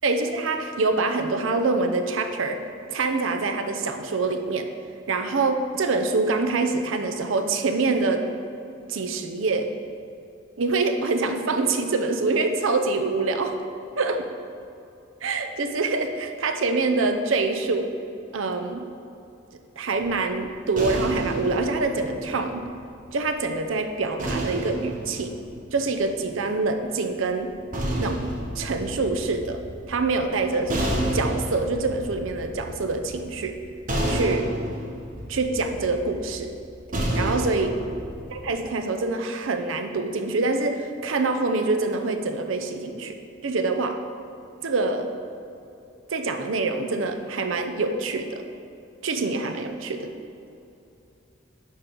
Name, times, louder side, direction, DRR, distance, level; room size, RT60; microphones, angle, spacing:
voice 1, 0.0-2.6 2.9-4.7 5.1-8.3 8.9-9.7 10.6-13.6 14.0-14.3 15.2-17.9 18.3-18.8 19.8-22.7 23.1-25.3 25.7-27.5 28.0-28.2 28.6-29.6 29.9-33.6 34.1-34.5 35.3-36.6 37.2-37.8 38.3-44.0 44.6-45.1 46.1-48.4 49.0-50.1, right 3 dB, 85° right, 6 dB, 0.6 m, -25 dB
sound 1, 20.0-23.3 24.2-26.5 27.4-38.5, right 1 dB, 40° right, 1.0 m, -31 dB
10.0 x 3.8 x 4.5 m, 2.7 s
head